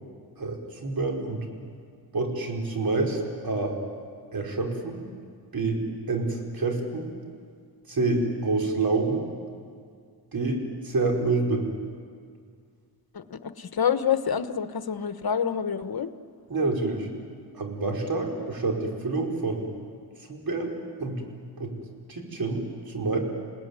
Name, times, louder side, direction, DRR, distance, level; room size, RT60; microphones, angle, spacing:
voice 1, 0.4-1.4 2.1-3.7 4.3-5.0 5.5-5.8 6.1-7.1 7.9-9.3 10.3-11.7 16.5-17.1 17.5-19.6 20.3-21.2 21.6-21.7 22.1-23.2, right 3 dB, 55° right, 0 dB, 4.9 m, -27 dB
voice 2, 13.1-16.1, left 7 dB, 60° left, 10 dB, 1.3 m, -27 dB
29.0 x 18.5 x 9.6 m, 2.1 s
cardioid pair, 80°, 41 cm